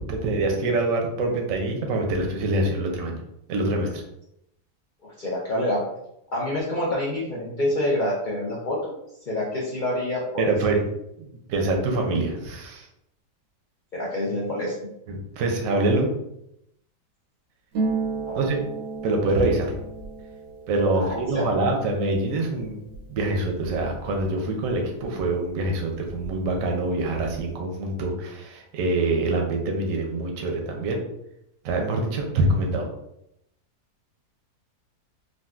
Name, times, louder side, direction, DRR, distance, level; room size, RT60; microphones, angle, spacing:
voice 1, 0.1-3.2 3.5-4.0 10.4-10.8 11.5-12.9 15.1-16.1 18.3-18.6 19.0-19.8 20.7-22.8 23.1-31.0 31.6-32.9, right 2 dB, 65° right, 2 dB, 0.9 m, -25 dB
voice 2, 5.0-5.8 6.3-9.0 9.3-10.5 13.9-14.7 18.3-18.6 20.9-21.4, left 1 dB, 80° left, -6 dB, 0.4 m, -27 dB
Harp, 17.7-25.2 25.5-26.6 26.8-27.5, right 4 dB, 85° right, 1.2 m, -35 dB
3.8 x 2.3 x 2.4 m, 0.80 s
omnidirectional pair, 1.7 m